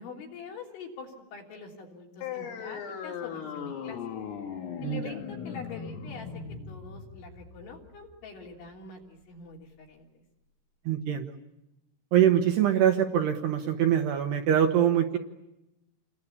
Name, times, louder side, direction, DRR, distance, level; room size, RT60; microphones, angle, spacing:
voice 1, 0.0-4.0 4.8-10.2, left 4 dB, 65° left, -1 dB, 5.5 m, -45 dB
sound 1, 2.2-9.2, left 7 dB, 85° left, 5.4 m, -39 dB
voice 2, 10.9-11.3 12.1-15.2, right 10 dB, 70° right, 4 dB, 2.7 m, -24 dB
29.0 x 22.0 x 8.6 m, 0.94 s
omnidirectional pair, 5.8 m